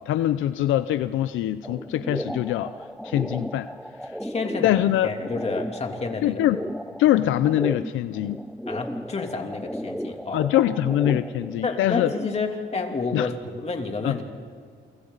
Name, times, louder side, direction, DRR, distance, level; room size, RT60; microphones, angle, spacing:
voice 1, 0.0-2.7 3.0-3.7 4.6-5.1 6.2-6.6 7.0-8.4 10.3-12.1 13.1-13.3 14.0-14.2, left 13 dB, 85° left, 12 dB, 0.6 m, -23 dB
sound 1, 1.6-12.4, equal, ahead, 0.6 m, -35 dB
voice 2, 4.2-6.4 8.7-10.4 11.6-14.2, left 4 dB, 30° left, 3 dB, 3.0 m, -30 dB
29.0 x 24.5 x 4.1 m, 2.2 s
cardioid pair, 90°, 20 cm